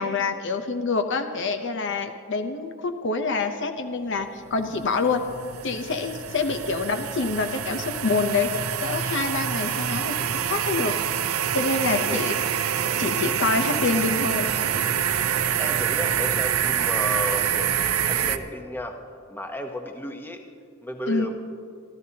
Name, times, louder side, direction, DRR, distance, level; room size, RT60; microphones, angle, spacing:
voice 1, 0.0-5.2 5.6-10.9 11.5-12.3 13.0-14.5 21.1-21.3, left 4 dB, 55° left, 7 dB, 0.7 m, -26 dB
sound 1, 4.5-18.4, right 8 dB, 70° right, 0.6 m, -26 dB
voice 2, 11.9-12.3 15.6-17.8 18.0-19.0 19.3-20.4 20.8-21.3, equal, 10° left, 3 dB, 0.9 m, -33 dB
28.5 x 12.5 x 2.9 m, 2.2 s
head